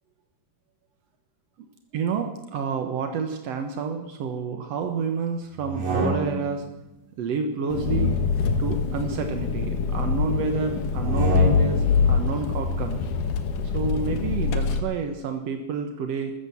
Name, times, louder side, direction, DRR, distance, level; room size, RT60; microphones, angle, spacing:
voice 1, 1.9-6.6 7.2-8.1 8.6-13.0 13.6-16.3, right 5 dB, 75° right, 5 dB, 1.5 m, -29 dB
sound 1, 5.6-6.6 7.9-9.6 10.9-11.9, right 3 dB, 40° right, 3.9 m, -30 dB
Engine, 7.7-14.8, left 5 dB, 65° left, 2.4 m, -24 dB
14.0 x 14.0 x 7.1 m, 0.97 s
omnidirectional pair, 4.7 m